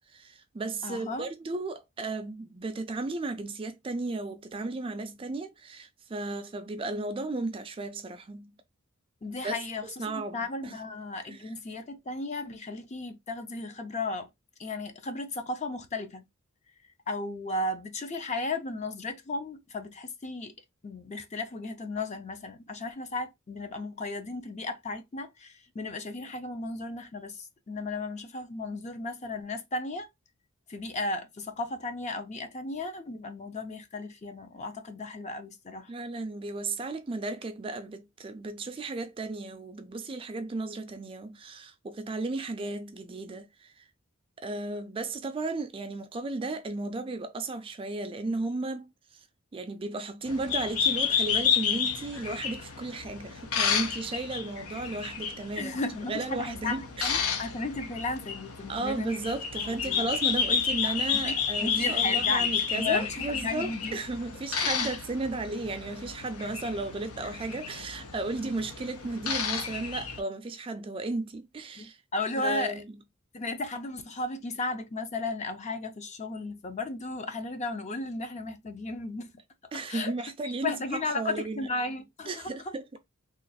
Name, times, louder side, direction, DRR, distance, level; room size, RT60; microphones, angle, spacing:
voice 1, 0.1-8.5 9.4-9.5 10.0-10.8 11.2-11.5 35.9-43.8 44.4-49.2 49.5-55.8 56.1-57.5 58.7-72.0 72.4-72.9 79.7-81.7 82.3-82.8, right 2 dB, 25° right, 0.4 m, -34 dB
voice 2, 0.8-1.3 9.2-14.3 14.6-16.2 17.1-20.5 20.8-30.1 30.7-35.9 55.6-59.1 59.6-60.1 61.1-61.3 61.6-64.0 64.8-65.0 71.8-72.8 73.3-79.3 79.9-80.1 80.4-82.7, left 3 dB, 35° left, 0.6 m, -35 dB
sound 1, 50.3-70.2, left 7 dB, 85° left, 0.7 m, -31 dB
3.2 x 2.3 x 4.0 m
head